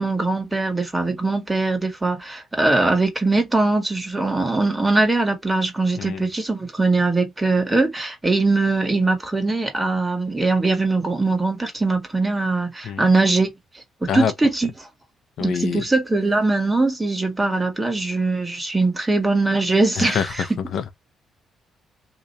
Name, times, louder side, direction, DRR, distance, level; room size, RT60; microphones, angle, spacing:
voice 1, 0.0-13.8 14.1-14.7 15.4-20.5, right 3 dB, 15° right, 1.3 m, -21 dB
voice 2, 15.4-15.8 20.0-20.3 20.7-20.9, left 7 dB, 70° left, 0.6 m, -25 dB
2.9 x 2.5 x 4.0 m
cardioid pair, 90°, 0 cm